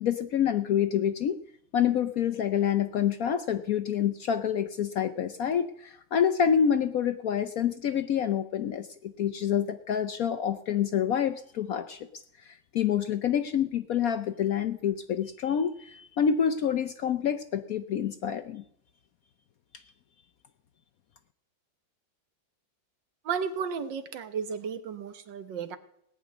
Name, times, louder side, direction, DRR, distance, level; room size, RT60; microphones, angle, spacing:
voice 1, 0.0-1.4 1.7-12.0 12.4-18.6, left 8 dB, 65° left, 10 dB, 0.9 m, -27 dB
voice 2, 23.3-25.8, right 6 dB, 75° right, 11 dB, 1.8 m, -33 dB
18.0 x 6.2 x 9.3 m, 0.74 s
omnidirectional pair, 2.0 m